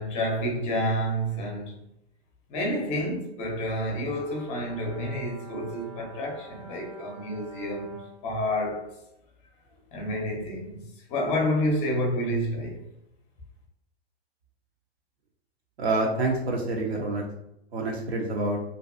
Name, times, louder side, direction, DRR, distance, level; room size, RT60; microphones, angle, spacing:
voice 1, 0.0-1.7 2.5-8.9 9.9-10.8 11.1-12.8, equal, 20° left, 0.5 m, -29 dB
Brass instrument, 3.8-8.2, right 3 dB, 25° right, 0.5 m, -47 dB
voice 2, 15.8-17.2 17.7-18.6, right 2 dB, 75° right, 0.6 m, -27 dB
2.5 x 2.2 x 2.3 m
figure-of-eight pair, 110°, 32 cm